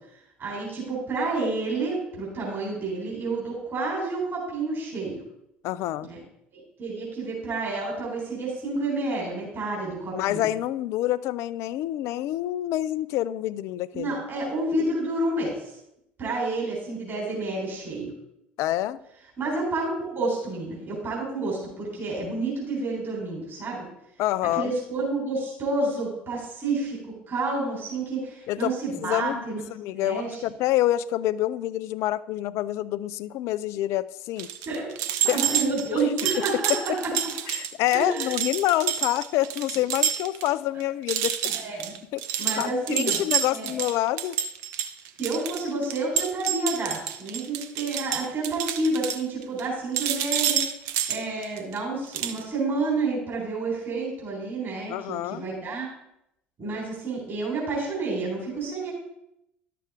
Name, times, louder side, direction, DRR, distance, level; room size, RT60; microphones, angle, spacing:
voice 1, 0.4-5.2 6.0-6.2 6.5-10.4 13.9-15.8 16.2-18.1 19.4-23.8 24.6-27.0 27.3-29.6 29.9-30.4 34.7-37.3 37.9-38.3 41.4-41.9 42.4-43.2 43.5-43.7 45.2-50.6 51.1-55.9 56.6-58.9, right 3 dB, 40° right, -4 dB, 3.7 m, -29 dB
voice 2, 5.6-6.1 10.1-14.2 18.6-19.0 24.2-24.7 28.5-28.7 29.0-29.4 29.7-34.5 35.3-35.4 35.9-36.1 36.4-36.5 36.7-36.8 37.5-41.5 42.1-42.2 42.6-44.4 54.9-55.4, left 14 dB, 55° left, 17 dB, 0.4 m, -27 dB
sound 1, 34.4-40.5 40.8-40.9 41.1-49.7 49.9-51.8 52.1-52.4, right 10 dB, 60° right, 0.7 m, -28 dB
11.0 x 6.7 x 3.6 m, 0.82 s
figure-of-eight pair, 60°, 6 cm